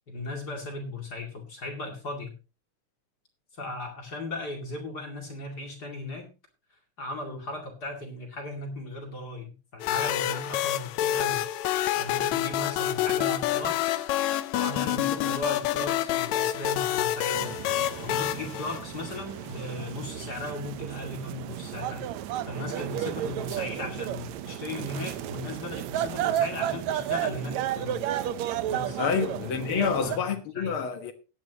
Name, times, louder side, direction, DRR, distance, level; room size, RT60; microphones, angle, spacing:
voice 1, 0.1-2.3 3.6-6.3 7.0-11.4 12.0-14.1 14.5-17.5 18.0-22.1 22.5-28.0 28.7-29.1 29.7-30.3 30.5-30.8, left 2 dB, 35° left, 2.6 m, -37 dB
sound 1, 9.8-19.4, left 12 dB, 75° left, 1.9 m, -28 dB
sound 2, 17.3-30.2, right 11 dB, 75° right, 1.9 m, -33 dB
voice 2, 29.0-31.1, left 6 dB, 55° left, 1.7 m, -28 dB
16.0 x 10.5 x 2.9 m
omnidirectional pair, 3.6 m